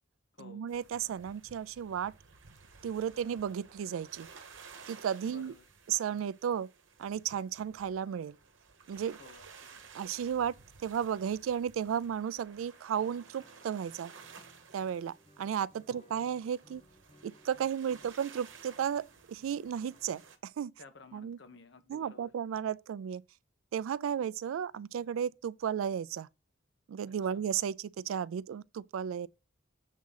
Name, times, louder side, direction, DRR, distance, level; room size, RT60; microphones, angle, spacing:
voice 1, 0.4-2.1 2.8-4.3 4.9-5.5 5.9-6.7 7.0-8.4 8.9-9.2 9.9-10.5 10.8-14.1 14.7-16.8 17.2-20.7 21.1-21.4 21.9-23.2 23.7-26.3 26.9-29.3, right 8 dB, 90° right, 0.3 m, -34 dB
sound 1, 0.7-20.4, right 5 dB, 70° right, 1.1 m, -55 dB
voice 2, 5.3-5.6 9.2-9.9 15.9-16.2 20.8-22.3 27.3-27.4, left 3 dB, 65° left, 1.1 m, -54 dB
Guitar, 12.9-20.4, equal, 30° left, 0.8 m, -64 dB
7.3 x 3.7 x 5.6 m
head